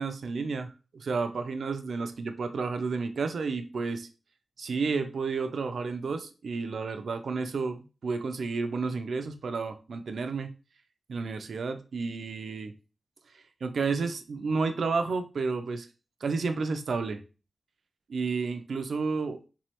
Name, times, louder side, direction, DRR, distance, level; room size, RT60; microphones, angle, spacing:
voice 1, 0.0-4.1 4.6-10.5 11.1-12.7 13.6-15.9 16.2-17.2 18.1-19.4, right 4 dB, 85° right, 0.4 m, -31 dB
3.6 x 3.1 x 2.9 m
cardioid pair, 45°, 0 cm